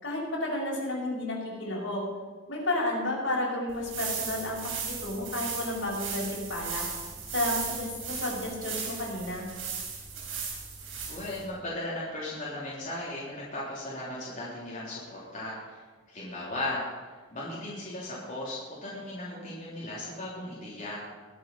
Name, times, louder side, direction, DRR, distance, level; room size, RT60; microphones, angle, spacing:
voice 1, 0.0-2.0 2.5-6.8 7.3-9.5, left 1 dB, 70° left, -3 dB, 5.5 m, -32 dB
sound 1, 3.7-11.5, right 6 dB, 75° right, 4.9 m, -36 dB
voice 2, 11.1-21.0, left 1 dB, 40° left, -8 dB, 3.3 m, -37 dB
21.5 x 7.7 x 5.6 m, 1.4 s
head